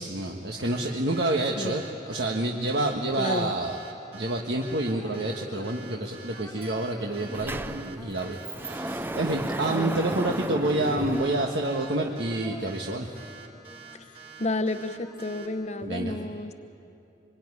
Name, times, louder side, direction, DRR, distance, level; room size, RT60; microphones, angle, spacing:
voice 1, 0.0-3.8 4.1-13.1 15.8-16.1, right 1 dB, 65° right, 0 dB, 1.5 m, -28 dB
sound 1, 0.6-15.5, right 6 dB, 30° right, 3.6 m, -47 dB
voice 2, 3.2-3.5 9.7-10.0 14.4-16.5, left 2 dB, 35° left, 10 dB, 1.0 m, -31 dB
Drip, 4.8-10.1 10.5-15.9, left 1 dB, 10° left, 1.8 m, -47 dB
Sliding door, 6.6-6.7 7.0-12.0, right 1 dB, 10° right, 0.5 m, -34 dB
25.5 x 23.5 x 9.8 m, 2.8 s
head